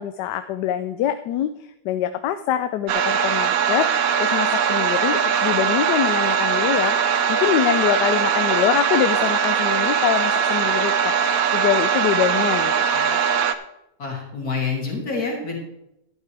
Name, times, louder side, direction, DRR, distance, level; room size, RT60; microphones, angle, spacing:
voice 1, 0.0-1.5 1.8-13.2, left 11 dB, 75° left, 10 dB, 1.1 m, -24 dB
sound 1, 2.9-13.5, right 7 dB, 65° right, 1.0 m, -21 dB
voice 2, 14.0-15.6, left 4 dB, 55° left, -1 dB, 3.1 m, -27 dB
12.0 x 11.0 x 3.4 m, 0.84 s
omnidirectional pair, 1.9 m